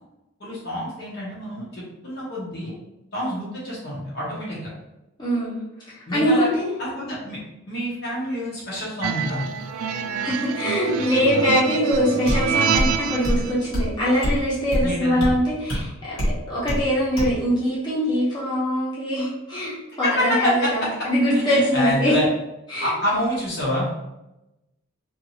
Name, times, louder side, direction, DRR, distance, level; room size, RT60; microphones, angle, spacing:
voice 1, 0.4-2.7 3.1-4.7 6.1-6.5 6.8-7.4 7.7-9.4 14.8-15.2 20.0-20.7 21.3-22.3 22.8-23.9, left 1 dB, 50° left, -6 dB, 0.9 m, -27 dB
voice 2, 5.2-6.7 10.2-16.2 16.5-22.1 22.7-22.9, equal, 20° left, -9 dB, 1.0 m, -23 dB
sound 1, 9.0-13.5, right 6 dB, 80° right, 0.3 m, -26 dB
sound 2, 12.3-12.4 12.8-12.9 13.2-13.4 13.7-13.9 14.2-14.4 14.7-14.9 15.2-15.3 15.7-15.8 16.2-16.4 16.7-16.8 17.2-17.3, equal, 75° left, 1.4 m, -23 dB
2.7 x 2.6 x 2.8 m, 0.95 s
head